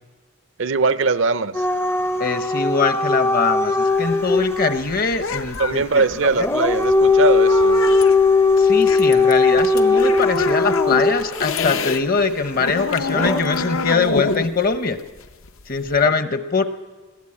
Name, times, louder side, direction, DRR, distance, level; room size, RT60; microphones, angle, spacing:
voice 1, 0.6-1.6 5.6-7.8 16.0-16.1, right 4 dB, 60° right, 0.6 m, -21 dB
Dog / Siren, 1.5-4.8 6.3-11.5 13.1-13.4, left 3 dB, 10° left, 0.5 m, -18 dB
voice 2, 2.2-6.1 8.6-15.0 15.7-16.6, left 4 dB, 40° left, 0.9 m, -22 dB
sound 1, 3.9-12.0 12.3-16.1, left 4 dB, 70° left, 0.8 m, -27 dB
20.5 x 15.5 x 8.7 m
head